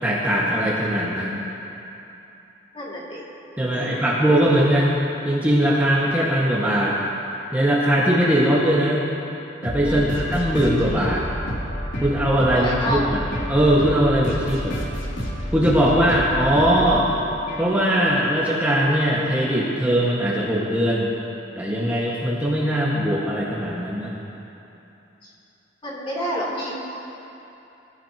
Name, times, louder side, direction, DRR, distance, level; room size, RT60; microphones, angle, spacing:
voice 1, 0.0-1.5 3.6-5.0 5.2-7.0 7.5-9.0 9.6-11.3 12.0-13.2 13.5-14.8 15.5-17.1 17.6-21.1 21.6-24.1, equal, 10° right, -7 dB, 1.8 m, -20 dB
voice 2, 2.7-3.2 3.7-4.0 9.8-10.3 12.5-13.1 25.2-25.3 25.8-26.7, equal, 30° left, -6 dB, 3.3 m, -29 dB
sound 1, 9.6-18.0, equal, 65° left, 3.1 m, -30 dB
24.0 x 14.5 x 3.0 m, 2.9 s
head